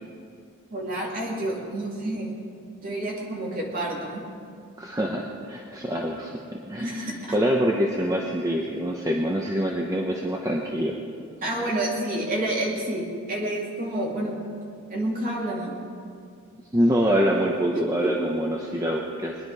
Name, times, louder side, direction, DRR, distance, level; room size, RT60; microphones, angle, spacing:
voice 1, 0.7-2.3 2.8-4.2 6.8-7.3 11.4-14.4 14.9-15.7 17.7-18.3, right 1 dB, 40° right, -3 dB, 2.7 m, -29 dB
voice 2, 4.8-10.9 11.6-11.7 16.7-19.4, equal, 15° right, 0 dB, 0.8 m, -25 dB
21.5 x 10.5 x 4.7 m, 2.3 s
head